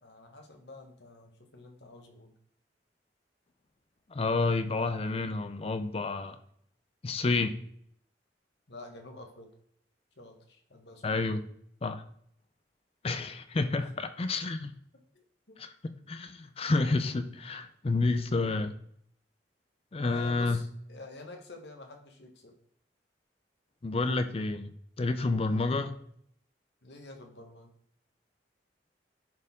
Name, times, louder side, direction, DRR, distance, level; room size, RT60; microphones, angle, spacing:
voice 1, 0.0-2.3 8.7-9.5 10.2-11.2 15.1-15.6 20.0-22.5 25.4-25.8 26.8-27.7, left 2 dB, 75° left, 3 dB, 1.5 m, -48 dB
voice 2, 4.1-6.4 7.0-7.6 11.0-11.5 11.8-12.0 13.0-14.7 15.6-15.7 16.1-18.7 19.9-20.6 23.8-24.7 25.0-26.0, left 3 dB, 35° left, 10 dB, 0.5 m, -29 dB
10.5 x 4.5 x 3.6 m, 0.67 s
head